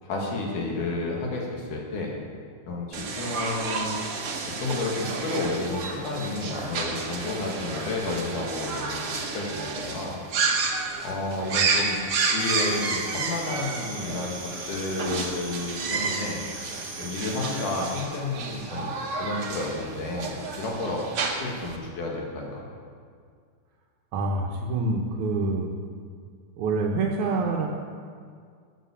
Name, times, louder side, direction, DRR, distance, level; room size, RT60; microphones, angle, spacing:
voice 1, 0.0-2.2 2.7-3.9 4.5-10.2 11.0-16.4 17.0-18.9 19.2-21.1 21.4-22.7, left 2 dB, 80° left, -2 dB, 3.6 m, -31 dB
sound 1, 2.9-21.8, right 4 dB, 50° right, 1.8 m, -31 dB
sound 2, 12.4-18.0, right 2 dB, 25° right, 2.4 m, -39 dB
voice 2, 24.1-25.7 26.6-27.7, right 3 dB, 75° right, -2 dB, 2.4 m, -26 dB
13.5 x 9.2 x 7.2 m, 2.1 s
omnidirectional pair, 3.6 m